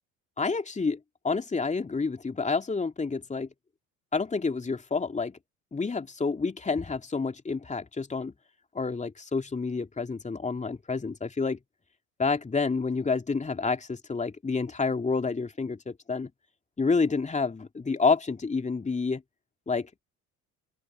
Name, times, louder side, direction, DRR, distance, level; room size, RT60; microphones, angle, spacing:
voice 1, 0.4-1.0 1.2-3.5 4.1-5.4 5.7-8.3 8.7-11.6 12.2-16.3 16.8-19.2 19.7-19.9, left 4 dB, 15° left, 2.6 m, -29 dB
open air
figure-of-eight pair, 60°, 43 cm